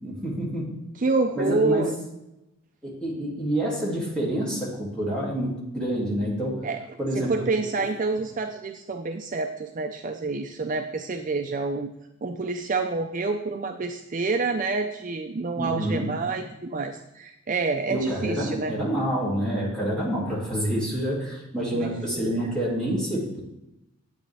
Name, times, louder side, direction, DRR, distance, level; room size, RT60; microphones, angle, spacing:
voice 1, 0.0-0.7 1.4-1.9 2.8-6.6 7.0-7.3 7.8-7.9 15.6-16.1 17.9-23.4, equal, 5° left, -6 dB, 2.5 m, -28 dB
voice 2, 1.0-1.9 6.6-6.8 7.1-11.9 12.2-18.7 21.7-22.5, right 3 dB, 35° right, 5 dB, 0.4 m, -28 dB
9.7 x 8.7 x 3.4 m, 0.91 s
head